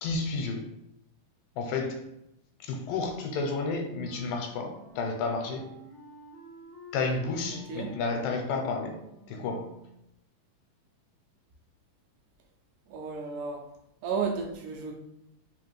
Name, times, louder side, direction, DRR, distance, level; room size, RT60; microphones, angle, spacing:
voice 1, 0.0-0.7 1.6-2.0 2.6-5.7 6.9-9.0 9.3-9.7, left 4 dB, 85° left, 3 dB, 2.2 m, -31 dB
Wind instrument woodwind instrument, 3.8-10.0, right 2 dB, 65° right, 1.3 m, -49 dB
voice 2, 7.5-8.0 12.9-13.6 14.0-14.9, right 5 dB, 80° right, 0 dB, 2.0 m, -33 dB
5.1 x 2.4 x 3.1 m, 0.84 s
omnidirectional pair, 3.9 m